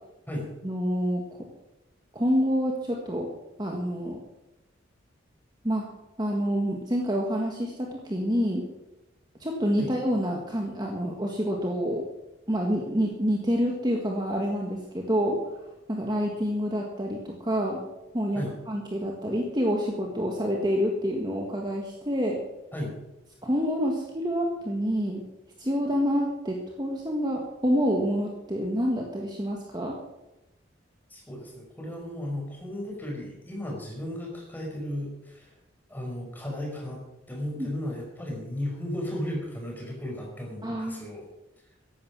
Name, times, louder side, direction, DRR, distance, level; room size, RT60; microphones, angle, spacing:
voice 1, 0.6-1.2 2.1-3.3 3.6-4.2 5.6-5.9 6.2-8.7 9.4-12.0 12.5-15.6 15.9-17.8 18.1-22.4 23.4-25.2 25.6-30.0 37.6-37.7 40.6-41.0, equal, 20° right, 0 dB, 1.7 m, -27 dB
voice 2, 31.1-35.5 35.9-37.0 37.3-41.2, left 1 dB, 10° left, -1 dB, 5.0 m, -35 dB
14.5 x 11.0 x 6.1 m, 0.96 s
head